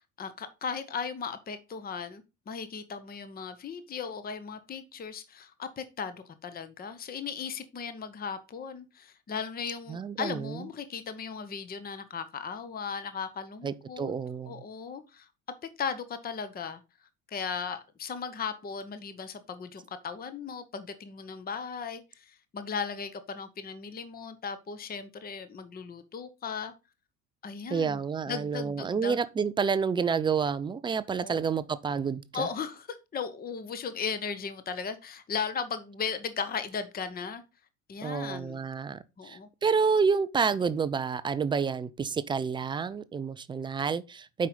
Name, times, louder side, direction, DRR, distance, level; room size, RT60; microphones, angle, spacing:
voice 1, 0.2-14.1 14.5-15.3 15.6-16.8 17.3-26.7 27.4-28.0 28.3-29.2 31.2-31.4 32.3-37.4 37.9-38.6 39.2-39.5, left 6 dB, 20° left, 0.9 m, -37 dB
voice 2, 9.9-10.6 13.6-14.6 27.7-32.5 38.0-44.5, right 5 dB, 10° right, 0.4 m, -29 dB
8.4 x 5.4 x 3.9 m
figure-of-eight pair, 65°, 43 cm